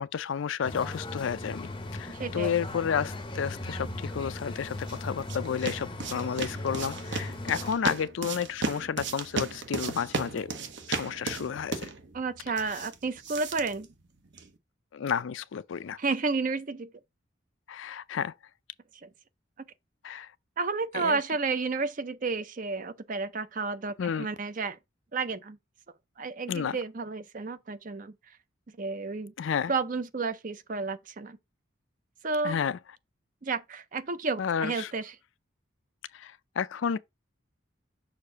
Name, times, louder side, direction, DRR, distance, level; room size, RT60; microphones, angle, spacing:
voice 1, 0.0-10.5 10.9-11.9 12.5-12.8 14.9-16.0 17.7-18.3 20.0-20.3 20.9-21.2 24.0-24.3 26.5-26.8 29.4-29.7 32.4-32.8 34.4-34.9 36.1-37.0, left 7 dB, 70° left, 0.4 m, -31 dB
sound 1, 0.6-7.8, left 2 dB, 25° left, 0.6 m, -38 dB
voice 2, 2.1-2.5 12.1-13.9 16.0-16.9 19.0-19.1 20.6-24.8 25.1-25.6 26.2-28.1 28.8-29.3 29.7-31.4 32.2-32.6 33.4-35.2, right 4 dB, 40° right, 0.5 m, -31 dB
sound 2, 4.6-14.6, right 4 dB, 60° right, 0.9 m, -36 dB
6.6 x 2.6 x 5.5 m
head